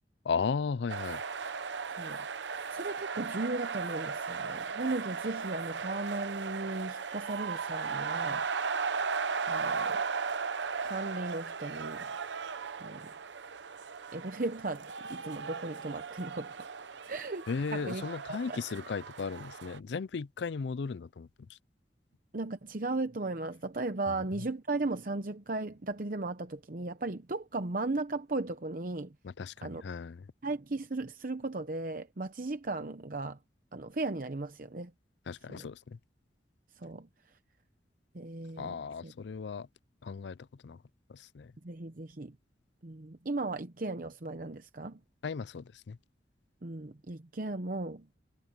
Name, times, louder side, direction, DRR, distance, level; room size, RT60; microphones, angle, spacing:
voice 1, 0.2-1.2 17.5-21.6 24.4-24.5 29.2-30.3 35.3-36.0 38.6-39.7 40.0-40.8 41.1-41.5 45.2-46.0, left 5 dB, 80° left, 0.4 m, -36 dB
sound 1, 0.9-19.8, right 5 dB, 85° right, 0.8 m, -36 dB
voice 2, 2.5-8.4 9.5-10.0 10.8-12.1 12.8-13.1 14.1-16.7 17.1-18.6 22.3-29.1 29.6-29.8 30.4-33.4 33.7-34.9 35.5-35.7 36.8-37.1 38.1-38.8 39.0-39.1 41.6-42.3 42.8-45.0 46.6-48.2, right 2 dB, 50° right, 0.8 m, -36 dB
head